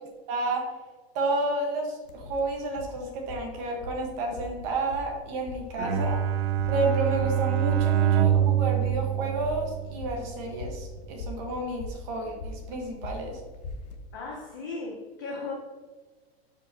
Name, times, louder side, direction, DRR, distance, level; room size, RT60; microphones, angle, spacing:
voice 1, 0.3-0.7 1.1-6.2 6.7-13.4, right 2 dB, 20° right, 1 dB, 1.1 m, -31 dB
sound 1, 2.0-14.0, left 2 dB, 40° left, 0.8 m, -42 dB
Bowed string instrument, 5.8-10.2, right 9 dB, 70° right, 0.7 m, -25 dB
voice 2, 14.1-15.5, left 3 dB, 20° left, 0 dB, 0.5 m, -36 dB
12.0 x 5.2 x 2.7 m, 1.3 s
supercardioid pair, 180°, 32 cm